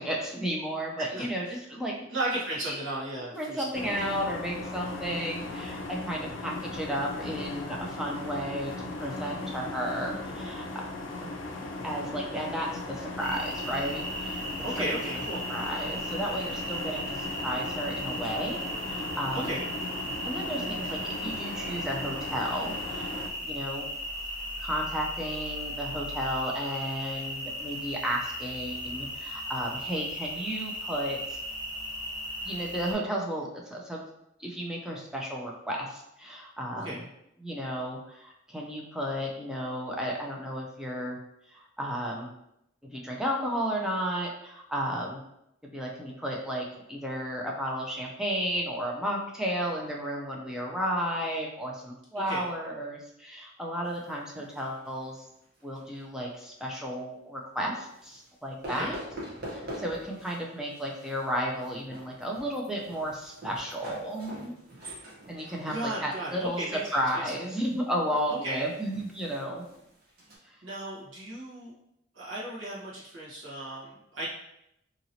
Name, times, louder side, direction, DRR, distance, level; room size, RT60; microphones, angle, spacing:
voice 1, 0.0-2.1 2.7-2.8 3.3-10.6 11.2-11.3 11.8-14.4 15.5-18.6 18.9-19.5 20.2-23.1 23.4-23.9 24.6-31.4 32.4-34.1 34.4-37.0 37.4-41.2 41.5-42.3 42.9-45.2 45.7-55.2 55.6-59.0 59.5-64.5 65.3-66.6 66.9-69.6 70.4-70.5, equal, 5° right, -2 dB, 0.4 m, -33 dB
voice 2, 2.1-3.9 14.6-15.4 19.3-19.7 20.6-21.0 36.7-37.0 52.1-52.5 58.6-58.9 65.3-67.2 68.3-68.7 70.6-71.7 72.1-74.3, right 1 dB, 70° right, -7 dB, 1.1 m, -35 dB
sound 1, 3.7-23.3, left 2 dB, 75° left, 0.4 m, -38 dB
sound 2, 13.2-32.9, equal, 90° right, 1.2 m, -36 dB
sound 3, 53.8-56.0 56.4-56.8 57.8-58.3 58.6-60.4 60.7-70.4, equal, 50° right, 0.9 m, -45 dB
2.9 x 2.8 x 2.7 m, 0.81 s
head